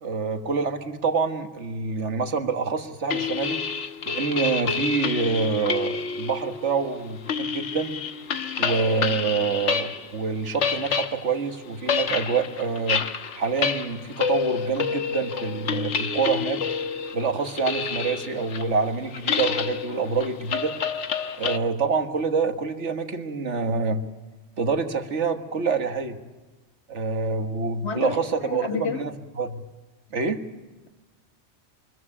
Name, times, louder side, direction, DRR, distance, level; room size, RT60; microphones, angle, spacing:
voice 1, 0.0-3.6 4.1-7.9 8.6-13.1 13.4-16.6 17.1-20.7 21.4-24.0 24.6-26.2 26.9-29.1 29.4-29.6 30.1-30.4, right 4 dB, 80° right, 8 dB, 1.8 m, -26 dB
sound 1, 3.1-10.2 10.4-21.6, left 6 dB, 90° left, 1.4 m, -29 dB
voice 2, 27.8-28.2 28.4-29.0, left 6 dB, 65° left, 7 dB, 1.8 m, -29 dB
24.5 x 14.0 x 9.8 m, 1.2 s
omnidirectional pair, 1.2 m